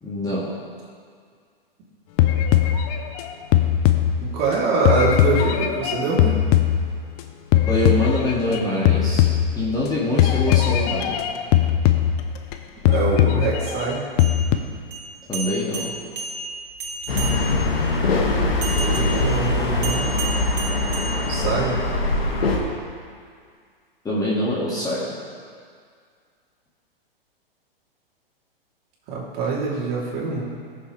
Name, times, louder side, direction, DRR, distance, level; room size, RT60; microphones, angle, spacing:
voice 1, 0.0-0.5 7.7-9.3 9.6-11.2 15.3-15.9 24.0-25.1, left 1 dB, 10° left, -7 dB, 2.2 m, -24 dB
sound 1, 2.2-4.5 4.9-7.2 7.5-8.6 8.9-9.9 10.2-12.5 12.9-14.6, left 11 dB, 40° left, 0.8 m, -19 dB
voice 2, 4.3-6.3 12.8-14.0 18.7-20.2 21.3-21.8 29.1-30.4, right 4 dB, 35° right, -5 dB, 3.2 m, -24 dB
sound 2, 14.1-17.8 18.6-21.8, right 3 dB, 60° right, 2.1 m, -33 dB
sound 3, 17.1-22.6, left 2 dB, 80° left, 1.9 m, -22 dB
18.0 x 7.2 x 3.4 m, 2.1 s
hypercardioid pair, 115°, 30 cm